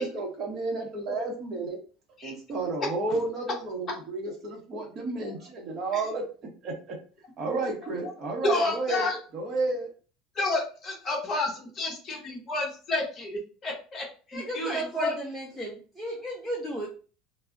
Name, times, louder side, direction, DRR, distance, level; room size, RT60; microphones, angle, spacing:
voice 1, 0.0-1.8 2.2-7.0 7.4-9.9, right 3 dB, 35° right, 1 dB, 0.8 m, -32 dB
voice 2, 8.4-9.2 10.4-15.1, left 2 dB, 25° left, -1 dB, 0.8 m, -30 dB
voice 3, 14.3-16.9, right 1 dB, ahead, -4 dB, 0.4 m, -34 dB
2.3 x 2.0 x 3.5 m, 0.38 s
cardioid pair, 155°, 0 cm